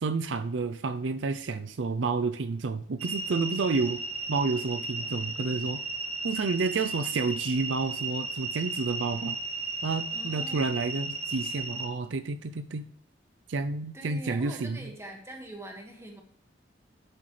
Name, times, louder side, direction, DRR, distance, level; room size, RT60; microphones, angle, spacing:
voice 1, 0.0-4.0 4.3-5.8 6.2-9.4 9.8-12.8 13.5-14.9, right 4 dB, 85° right, 10 dB, 0.5 m, -30 dB
sound 1, 3.0-11.9, right 3 dB, 35° right, 0.9 m, -35 dB
voice 2, 10.1-10.6 13.9-16.2, right 1 dB, 15° right, 1 dB, 1.8 m, -43 dB
11.0 x 7.8 x 3.3 m, 0.65 s
head